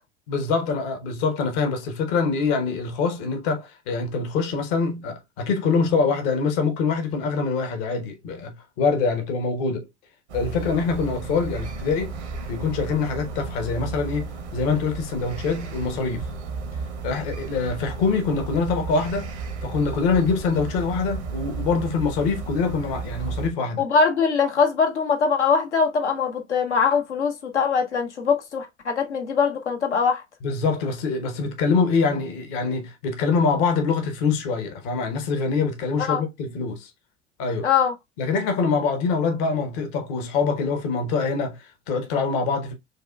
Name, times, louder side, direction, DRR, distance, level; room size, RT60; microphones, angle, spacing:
voice 1, 0.3-9.9 10.3-12.1 12.5-16.3 17.0-19.3 19.6-23.8 30.4-36.9 37.4-37.7 38.2-42.7, left 4 dB, 55° left, 1.0 m, -24 dB
sound 1, 10.3-23.5, right 4 dB, 75° right, 0.9 m, -33 dB
voice 2, 23.8-30.2 36.1-36.2 37.6-37.9, left 5 dB, 80° left, 0.8 m, -22 dB
6.3 x 2.4 x 2.2 m
figure-of-eight pair, 65°, 34 cm